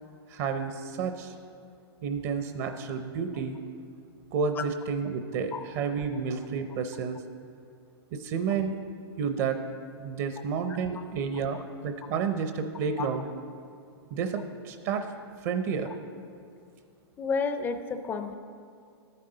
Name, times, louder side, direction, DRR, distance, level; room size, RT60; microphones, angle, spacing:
voice 1, 0.3-1.3 2.0-3.6 4.3-7.2 8.1-8.8 9.2-9.6 10.0-13.3 14.1-15.1 15.4-15.9, right 6 dB, 40° right, 8 dB, 0.6 m, -30 dB
voice 2, 17.2-18.3, left 5 dB, 15° left, 9 dB, 0.4 m, -30 dB
12.5 x 9.7 x 3.9 m, 2.4 s
hypercardioid pair, 145°, 14 cm